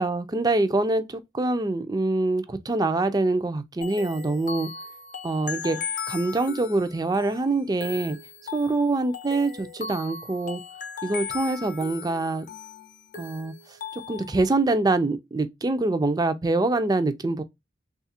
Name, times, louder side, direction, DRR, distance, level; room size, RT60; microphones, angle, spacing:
voice 1, 0.0-4.7 5.2-8.2 8.5-10.6 11.0-12.4 13.2-13.5 13.9-17.4, right 2 dB, 20° right, 0.4 m, -25 dB
sound 1, 3.8-14.5, left 6 dB, 50° left, 0.7 m, -37 dB
3.2 x 2.4 x 4.2 m
head